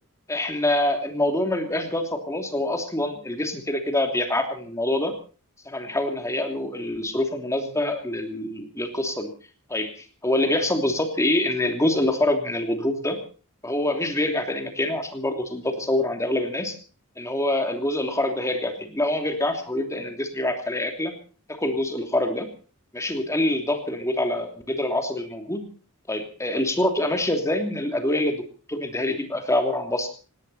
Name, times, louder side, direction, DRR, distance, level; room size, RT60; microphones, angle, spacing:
voice 1, 0.3-5.1 5.6-9.3 9.7-9.9 10.2-13.2 13.6-16.7 17.2-21.1 21.6-22.5 22.9-25.6 26.1-28.4 28.7-30.1, left 1 dB, 15° left, 5 dB, 3.0 m, -25 dB
19.0 x 17.5 x 4.3 m, 0.38 s
head